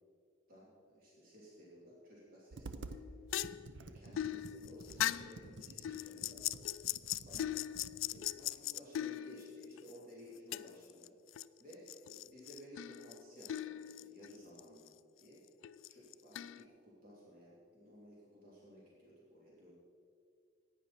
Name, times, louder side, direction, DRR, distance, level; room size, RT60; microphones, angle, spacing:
voice 1, 0.5-3.0 3.8-6.4 7.2-7.5 8.1-11.1 11.6-14.9 15.2-15.4 15.9-19.7, equal, 45° right, -7 dB, 3.1 m, -56 dB
Computer keyboard, 2.5-3.0 3.4-8.3, right 3 dB, 65° right, 0.6 m, -51 dB
sound 1, 2.9-9.9 10.5-11.4 11.7-14.6 14.9-15.0 15.6-16.6, left 12 dB, 80° left, 0.3 m, -40 dB
15.5 x 9.6 x 4.4 m, 2.2 s
head